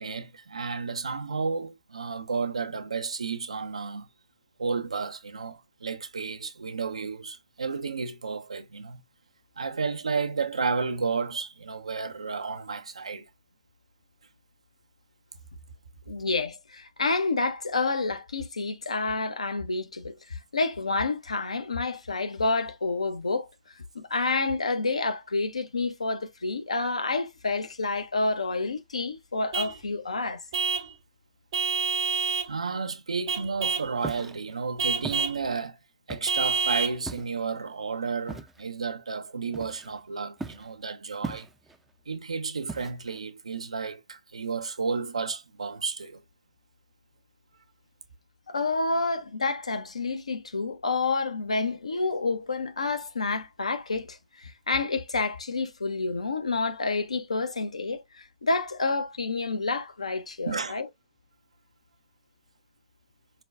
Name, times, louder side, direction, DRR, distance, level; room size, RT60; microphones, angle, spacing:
voice 1, 0.0-4.1 4.6-9.0 9.6-13.3 32.5-35.8 36.1-41.5 42.1-46.2 60.5-60.8, right 5 dB, 75° right, 0.5 m, -32 dB
voice 2, 16.1-20.2 20.5-23.5 23.8-30.4 48.5-60.9, left 3 dB, 75° left, 0.6 m, -29 dB
Vehicle horn car horn honking / Truck, 29.5-29.8 30.5-30.9 31.5-32.5 33.3-33.9 34.8-35.4 36.3-37.0, right 5 dB, 50° right, 0.8 m, -28 dB
Walk footsteps, 34.0-34.4 35.0-35.3 36.1-36.4 37.1-37.4 38.3-38.6 39.5-40.0 40.4-40.7 41.2-41.8 42.7-43.2, right 3 dB, 5° right, 0.4 m, -38 dB
4.9 x 2.2 x 2.3 m
figure-of-eight pair, 110°, 3 cm